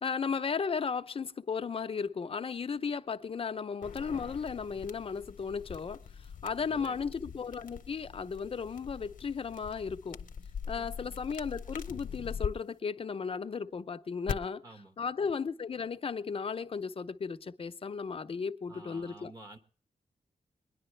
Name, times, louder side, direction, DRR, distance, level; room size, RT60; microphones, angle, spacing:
voice 1, 0.0-10.2 10.7-14.6 15.0-19.3, left 5 dB, 45° left, 0.5 m, -35 dB
sound 1, 3.8-12.5 14.3-14.4, left 7 dB, 80° left, 0.7 m, -42 dB
voice 2, 6.6-7.0 10.7-11.2 14.6-14.9 18.7-19.6, right 2 dB, 25° right, 1.1 m, -51 dB
21.5 x 10.5 x 3.2 m
wide cardioid pair, 145°, 14 cm